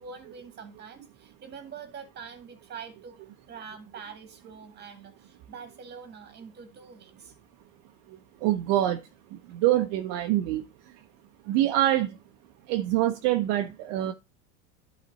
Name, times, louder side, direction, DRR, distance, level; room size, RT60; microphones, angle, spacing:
voice 1, 0.0-3.2 3.5-7.3 11.4-11.6, right 6 dB, 25° right, 1.9 m, -45 dB
voice 2, 8.1-11.0 11.5-12.2 12.7-14.1, right 13 dB, 55° right, 0.7 m, -26 dB
11.0 x 4.1 x 4.0 m
supercardioid pair, 130°, 40 cm